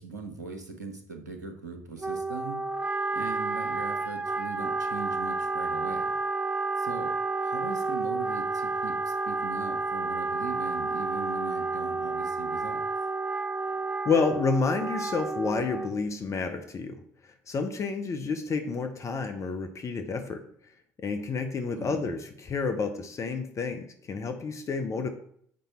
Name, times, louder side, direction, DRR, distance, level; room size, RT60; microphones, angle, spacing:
voice 1, 0.0-2.6 3.1-6.1 6.8-12.8 21.8-22.0, right 4 dB, 85° right, 5 dB, 1.1 m, -40 dB
Wind instrument woodwind instrument, 2.0-16.1, right 3 dB, 15° right, 0.6 m, -30 dB
voice 2, 14.0-17.0 17.2-20.4 21.0-25.1, left 4 dB, 35° left, 6 dB, 0.9 m, -30 dB
7.5 x 5.3 x 4.4 m, 0.67 s
figure-of-eight pair, 60°, 9 cm